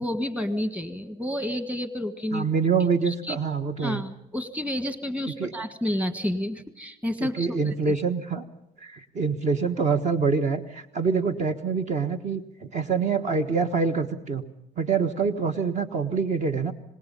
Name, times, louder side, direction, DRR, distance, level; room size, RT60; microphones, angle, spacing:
voice 1, 0.0-2.5 3.0-3.4 3.8-8.0, left 1 dB, 10° right, 9 dB, 1.6 m, -30 dB
voice 2, 2.3-4.0 5.4-5.5 7.2-8.4 8.8-14.4 14.8-16.7, right 5 dB, 45° right, 7 dB, 1.4 m, -25 dB
26.0 x 19.5 x 5.5 m, 0.84 s
cardioid pair, 110°, 17 cm